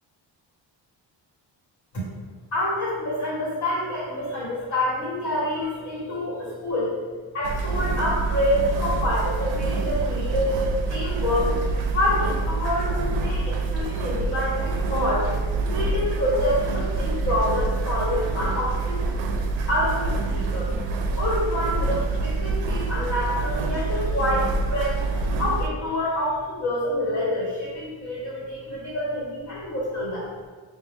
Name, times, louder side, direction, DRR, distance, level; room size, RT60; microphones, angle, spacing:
voice 1, 2.5-7.0 7.3-11.6 11.9-15.3 15.6-19.1 19.7-20.7 21.2-25.1 25.4-30.3, left 1 dB, 35° left, -7 dB, 1.1 m, -27 dB
sound 1, 7.4-25.7, right 3 dB, 85° right, 0.5 m, -26 dB
5.5 x 2.1 x 3.5 m, 1.5 s
wide cardioid pair, 165°, 44 cm